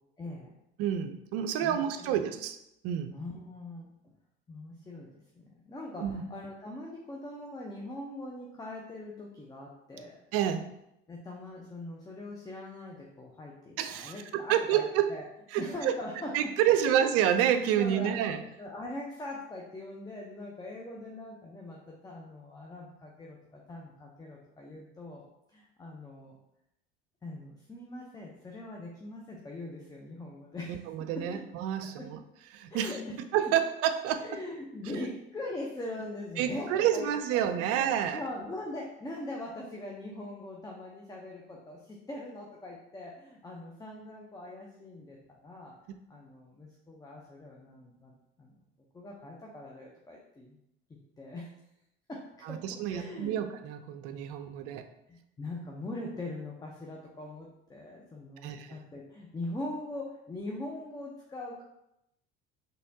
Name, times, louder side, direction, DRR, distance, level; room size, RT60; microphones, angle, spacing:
voice 1, 0.2-0.6 1.6-2.3 3.1-3.9 4.5-5.1 5.4-10.2 11.1-14.8 15.1-15.3 15.6-17.0 17.8-25.2 25.5-26.3 27.2-30.8 31.1-31.4 31.8-31.9 32.7-33.0 33.4-33.5 34.2-45.7 46.1-48.5 48.9-50.6 51.2-51.5 52.1-52.2 52.5-53.4 54.6-54.7 55.1-61.6, left 2 dB, 15° left, -1 dB, 0.7 m, -42 dB
voice 2, 0.8-2.6 2.8-3.1 6.0-6.2 10.3-10.7 13.8-15.1 15.5-16.0 16.3-18.4 30.7-32.2 32.5-32.9 33.3-34.4 36.4-38.2 45.9-46.0 52.4-54.8 58.4-58.8, right 10 dB, 55° right, 9 dB, 0.5 m, -29 dB
4.2 x 3.3 x 2.7 m, 0.83 s
hypercardioid pair, 70°, 30 cm